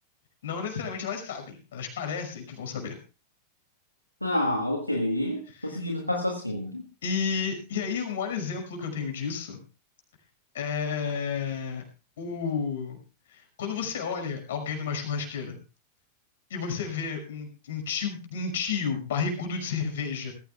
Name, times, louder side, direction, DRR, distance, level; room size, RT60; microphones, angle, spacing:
voice 1, 0.4-3.0 5.5-5.8 7.0-9.6 10.5-11.8 12.2-13.0 13.3-15.6 16.5-20.3, left 6 dB, 60° left, 4 dB, 5.8 m, -31 dB
voice 2, 4.2-6.8, left 1 dB, 85° left, 1 dB, 1.9 m, -28 dB
21.0 x 15.5 x 2.3 m, 0.32 s
figure-of-eight pair, 90°, 0 cm